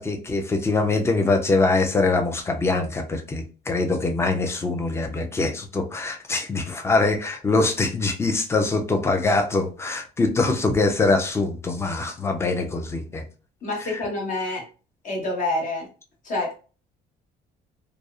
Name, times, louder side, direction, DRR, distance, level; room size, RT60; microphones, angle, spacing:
voice 1, 0.0-13.2 13.9-14.0, left 3 dB, 15° left, 0.4 m, -23 dB
voice 2, 13.6-14.6 15.0-15.9 16.2-16.5, left 2 dB, 50° left, 1.2 m, -27 dB
2.6 x 2.0 x 2.4 m
cardioid pair, 110°, 17 cm